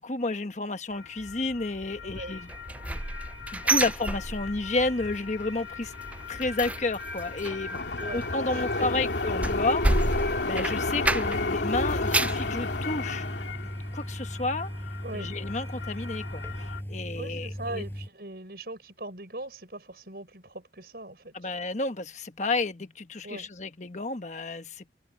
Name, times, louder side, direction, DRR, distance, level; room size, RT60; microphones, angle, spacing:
voice 1, 0.0-2.5 3.5-5.9 6.3-7.8 8.1-13.2 13.9-14.7 15.1-17.8 21.3-24.9, left 2 dB, 40° left, 1.2 m, -31 dB
sound 1, 0.9-16.8, left 2 dB, 80° left, 2.4 m, -33 dB
voice 2, 2.0-2.4 8.0-9.1 10.9-11.5 15.0-15.3 17.2-21.3 23.2-23.5, right 2 dB, 60° right, 6.2 m, -41 dB
sound 2, 2.5-4.8 5.1-5.5 5.8-11.6 11.9-12.5 13.0-13.1 13.5-13.6, right 2 dB, 10° right, 0.3 m, -30 dB
sound 3, 11.5-18.1, equal, 15° left, 7.4 m, -37 dB
head